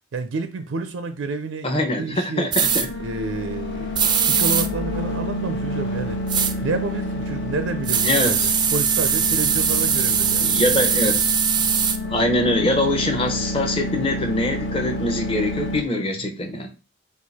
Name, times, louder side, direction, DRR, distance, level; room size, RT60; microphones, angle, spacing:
voice 1, 0.1-2.5 3.0-6.2 6.6-10.5 16.2-16.3, right 3 dB, 90° right, 0.5 m, -30 dB
voice 2, 1.6-2.9 8.0-8.5 10.4-11.3 12.1-16.7, left 1 dB, 30° left, 0.8 m, -23 dB
sound 1, 2.5-2.9 4.0-4.7 6.3-6.5 7.9-12.0, right 7 dB, 25° right, 0.3 m, -20 dB
sound 2, 2.6-15.8, left 1 dB, 65° left, 0.9 m, -29 dB
4.6 x 2.4 x 4.1 m
head